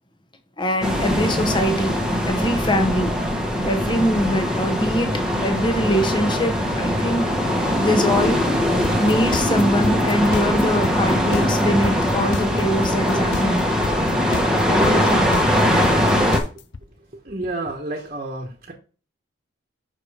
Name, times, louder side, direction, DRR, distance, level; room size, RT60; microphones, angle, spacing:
voice 1, 0.6-2.0 2.3-3.1 3.6-8.4 9.0-13.6 14.6-15.3, equal, 20° left, 6 dB, 1.0 m, -23 dB
sound 1, 0.8-16.4, equal, 5° right, 1.1 m, -21 dB
sound 2, 8.8-16.8, left 4 dB, 60° left, 0.5 m, -30 dB
voice 2, 17.1-18.7, right 2 dB, 40° right, 0 dB, 1.1 m, -30 dB
6.3 x 4.8 x 4.9 m, 0.36 s
head